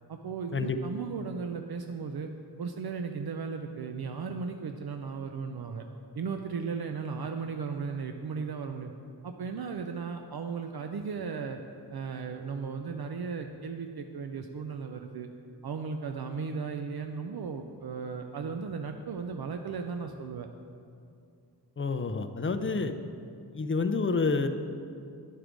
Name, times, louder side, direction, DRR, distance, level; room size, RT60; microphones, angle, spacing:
voice 1, 0.1-2.3 2.6-5.8 6.1-8.9 9.2-11.6 11.9-15.3 15.6-20.5 22.6-22.8, right 5 dB, 65° right, 5 dB, 0.5 m, -36 dB
voice 2, 21.8-22.9 23.5-24.5, left 4 dB, 30° left, 8 dB, 0.4 m, -28 dB
10.0 x 4.7 x 5.0 m, 2.4 s
wide cardioid pair, 80°, 42 cm